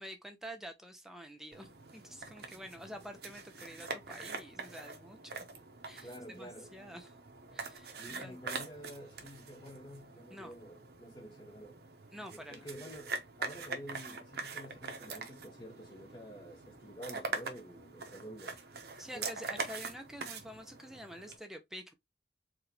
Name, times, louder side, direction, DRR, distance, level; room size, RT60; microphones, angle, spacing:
voice 1, 0.0-5.4 5.8-7.1 7.5-8.4 10.3-10.5 12.1-12.7 19.0-21.9, equal, 5° right, 0.6 m, -48 dB
sound 1, 1.5-21.4, right 4 dB, 60° right, 0.9 m, -44 dB
voice 2, 6.0-6.7 8.0-11.8 12.3-18.6 19.1-19.6, equal, 25° left, 0.9 m, -49 dB
4.8 x 2.4 x 3.2 m
head